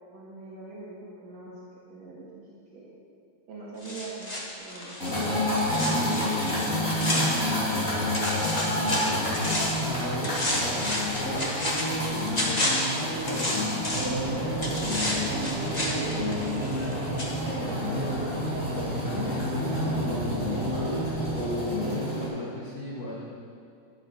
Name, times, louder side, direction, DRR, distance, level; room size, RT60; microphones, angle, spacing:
voice 1, 0.1-1.5 1.9-2.9 3.5-5.3 5.7-6.2 16.9-20.6, right 3 dB, 60° right, -7 dB, 2.5 m, -42 dB
sound 1, 3.8-7.9 8.1-9.9 10.2-14.2 14.6-16.9 17.2-17.3, left 1 dB, 50° left, 0.4 m, -31 dB
sound 2, 5.0-22.3, left 1 dB, 25° left, 3.0 m, -29 dB
voice 2, 9.0-16.0 21.9-23.2, left 1 dB, 70° left, -5 dB, 0.8 m, -39 dB
sound 3, 13.9-21.4, right 2 dB, 85° right, 2.9 m, -33 dB
11.5 x 9.2 x 5.3 m, 2.4 s
omnidirectional pair, 3.6 m